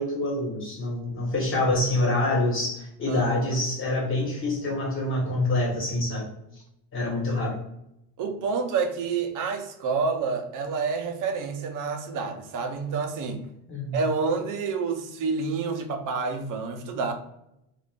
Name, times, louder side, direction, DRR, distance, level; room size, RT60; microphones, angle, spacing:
voice 1, 0.0-6.3 6.9-7.5 13.7-14.0, left 1 dB, 25° left, -3 dB, 1.4 m, -26 dB
voice 2, 3.1-3.6 7.2-7.4 8.2-13.4 13.9-17.1, right 4 dB, 45° right, 5 dB, 0.6 m, -28 dB
2.5 x 2.5 x 3.5 m, 0.81 s
cardioid pair, 125°, 44 cm